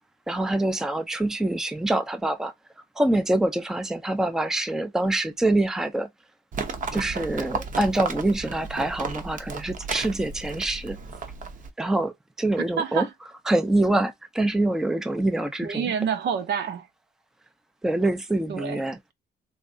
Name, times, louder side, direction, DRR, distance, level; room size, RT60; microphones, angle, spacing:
voice 1, 0.3-2.5 3.0-6.1 6.9-11.0 11.8-13.1 13.5-15.9 17.8-19.0, right 1 dB, 5° right, 0.5 m, -25 dB
Livestock farm animals working animals, 6.5-11.7, right 4 dB, 45° right, 0.8 m, -33 dB
voice 2, 12.8-13.1 15.6-16.9 18.5-18.8, right 7 dB, 75° right, 0.9 m, -27 dB
3.6 x 3.1 x 2.6 m
cardioid pair, 145°, 18 cm